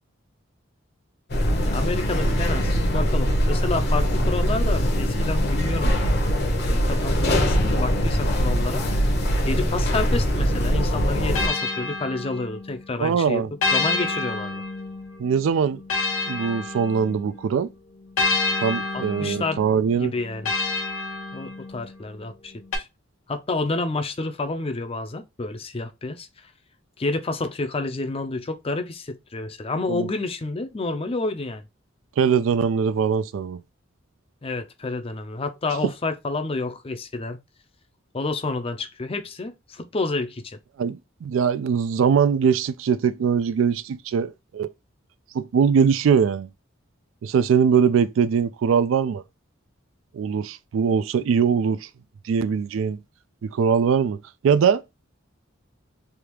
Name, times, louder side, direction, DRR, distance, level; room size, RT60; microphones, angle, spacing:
sound 1, 1.3-11.5, equal, 50° left, 0.8 m, -22 dB
voice 1, 1.4-6.0 6.6-8.8 9.4-14.6 18.9-20.5 21.3-22.9 23.3-26.5 27.0-31.6 34.4-37.4 38.1-40.6, left 3 dB, 30° left, 0.5 m, -29 dB
sound 2, 10.4-12.8 13.6-17.4 18.2-21.9 22.7-22.8, left 3 dB, 85° left, 0.8 m, -29 dB
voice 2, 13.0-13.5 15.2-15.8 16.3-17.7 18.6-20.1 29.9-30.1 32.2-33.6 40.8-44.7 45.3-46.5 47.2-49.2 50.1-51.9 52.2-53.0 53.4-54.2 54.4-54.8, right 6 dB, 70° right, 0.3 m, -21 dB
3.4 x 2.3 x 2.9 m
head